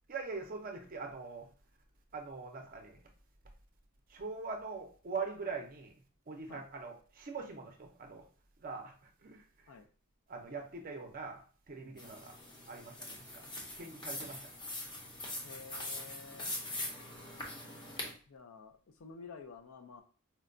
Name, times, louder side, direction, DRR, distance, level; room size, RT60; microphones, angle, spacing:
voice 1, 0.1-1.5 2.1-3.0 4.1-6.0 6.3-8.3 8.6-9.7 10.3-12.4 12.7-13.5 13.8-14.4, right 4 dB, 40° right, 0.5 m, -43 dB
sound 1, 12.0-18.1, left 1 dB, 20° left, 0.6 m, -43 dB
voice 2, 15.4-16.5 18.3-20.0, left 4 dB, 65° left, 0.4 m, -51 dB
4.4 x 2.2 x 2.5 m
head